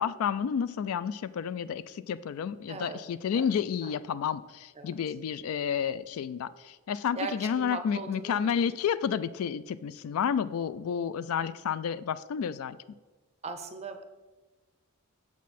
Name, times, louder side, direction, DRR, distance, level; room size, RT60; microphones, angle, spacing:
voice 1, 0.0-12.8, left 7 dB, 70° left, 17 dB, 0.3 m, -31 dB
voice 2, 2.7-3.0 3.3-3.4 3.8-4.0 4.8-4.9 7.2-8.5 13.4-14.0, right 4 dB, 30° right, 7 dB, 0.6 m, -39 dB
7.1 x 6.4 x 4.2 m, 1.2 s
head